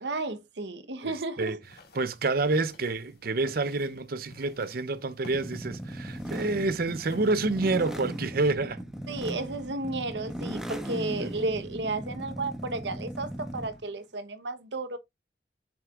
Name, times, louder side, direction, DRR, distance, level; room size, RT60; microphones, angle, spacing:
voice 1, 0.0-1.6 9.1-15.0, right 2 dB, 75° right, 1.0 m, -33 dB
voice 2, 1.0-1.6 1.9-8.8 11.2-11.3, right 3 dB, 55° right, 0.6 m, -28 dB
sound 1, 1.6-8.3, left 1 dB, 60° left, 2.0 m, -53 dB
sound 2, 5.3-13.8, right 1 dB, 5° right, 1.1 m, -38 dB
7.3 x 5.8 x 2.4 m
head